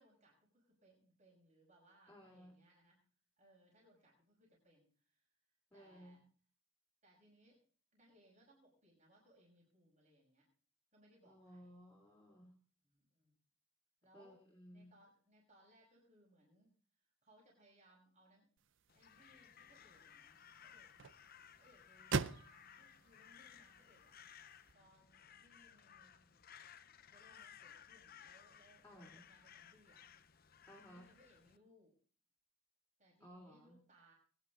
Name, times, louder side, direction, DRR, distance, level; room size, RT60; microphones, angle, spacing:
voice 1, 0.0-3.0 3.4-5.2 5.7-6.2 7.0-7.7 7.9-10.5 10.9-11.7 12.8-13.3 14.0-14.4 14.7-16.7 17.2-18.5 18.9-20.9 21.6-24.2 24.7-26.5 27.1-30.0 30.9-31.9 33.0-34.1, right 1 dB, 35° right, -3 dB, 5.6 m, -69 dB
voice 2, 2.1-2.6 5.7-6.2 11.2-12.6 14.1-14.9 28.8-29.2 30.7-31.1 33.2-33.8, equal, 10° left, -3 dB, 3.0 m, -58 dB
sound 1, 18.6-24.7, right 5 dB, 60° right, 0.6 m, -45 dB
Crow, 18.9-31.6, left 8 dB, 45° left, 0.7 m, -60 dB
21.5 x 10.0 x 3.8 m, 0.43 s
head